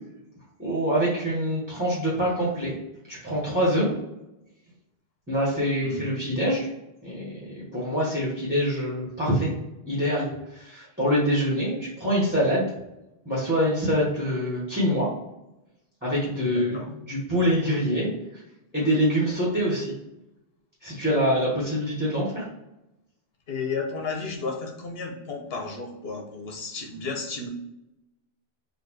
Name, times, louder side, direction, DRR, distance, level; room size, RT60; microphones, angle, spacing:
voice 1, 0.6-2.7 3.1-3.9 5.3-6.7 7.0-9.5 9.9-12.7 13.2-15.1 16.0-16.8 17.1-18.4 18.7-19.9 20.8-22.5, equal, 10° right, -7 dB, 1.3 m, -25 dB
voice 2, 5.8-6.2 16.4-16.9 23.5-27.5, left 4 dB, 75° left, 2 dB, 1.2 m, -33 dB
4.2 x 2.4 x 4.6 m, 0.91 s
omnidirectional pair, 1.0 m